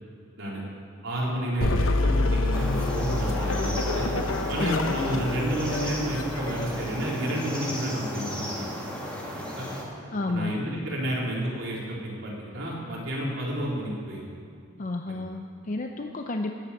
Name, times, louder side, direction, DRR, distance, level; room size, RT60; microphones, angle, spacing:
voice 1, 1.0-4.1 4.5-8.7 9.3-9.7 10.3-14.2 15.1-15.2, right 1 dB, 70° right, -5 dB, 3.9 m, -31 dB
sound 1, 1.6-7.1, left 2 dB, 85° left, 0.9 m, -27 dB
sound 2, 2.5-9.8, equal, 5° left, 2.4 m, -34 dB
voice 2, 4.6-5.0 10.1-10.5 14.8-16.5, left 2 dB, 40° left, 4 dB, 0.6 m, -31 dB
18.0 x 8.4 x 7.2 m, 2.3 s
head